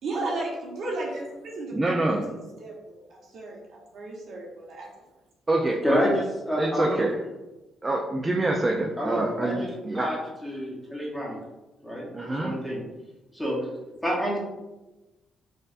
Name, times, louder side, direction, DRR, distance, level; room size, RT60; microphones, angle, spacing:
voice 1, 0.0-3.0 3.3-3.6 3.9-4.9 5.5-5.6, right 2 dB, 65° right, -3 dB, 1.0 m, -34 dB
voice 2, 1.7-2.2 5.5-6.1 6.6-7.2 7.8-10.1 12.1-12.5, right 2 dB, 20° right, -1 dB, 0.4 m, -26 dB
voice 3, 5.8-7.0 9.0-9.7 9.9-11.4 11.8-12.1 12.4-12.8 13.3-13.6 14.0-14.4, equal, 5° left, -5 dB, 0.9 m, -28 dB
4.5 x 2.5 x 2.5 m, 1.1 s
cardioid pair, 120°, 0 cm